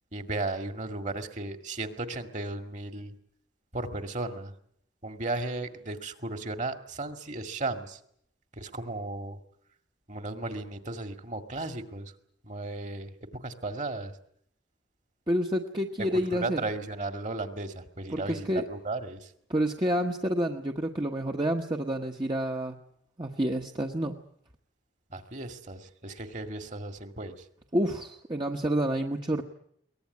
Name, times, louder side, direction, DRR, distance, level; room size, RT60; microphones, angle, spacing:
voice 1, 0.1-3.1 3.7-4.5 5.0-8.0 8.6-9.4 10.1-12.1 12.4-14.1 16.1-19.3 25.1-27.5, right 2 dB, 40° right, 7 dB, 2.0 m, -35 dB
voice 2, 15.3-16.6 18.1-18.6 19.5-22.8 23.2-24.2 27.7-29.4, equal, 25° right, 2 dB, 1.1 m, -28 dB
23.0 x 19.0 x 9.6 m, 0.71 s
head